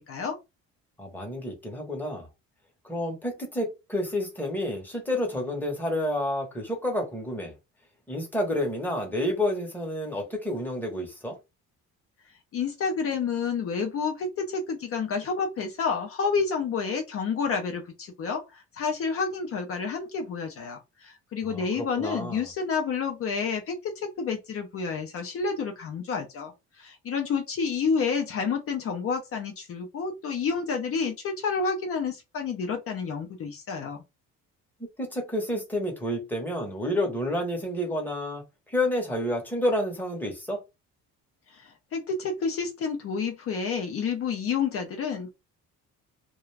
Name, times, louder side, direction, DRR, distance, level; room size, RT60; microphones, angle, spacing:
voice 1, 0.1-0.4 12.5-18.4 18.7-26.5 26.8-34.0 41.9-45.3, left 5 dB, 45° left, 0.6 m, -29 dB
voice 2, 1.0-2.3 2.8-7.5 8.1-11.4 21.4-22.5 35.0-40.6, left 1 dB, 5° left, 0.8 m, -29 dB
2.4 x 2.3 x 3.2 m
cardioid pair, 155°, 31 cm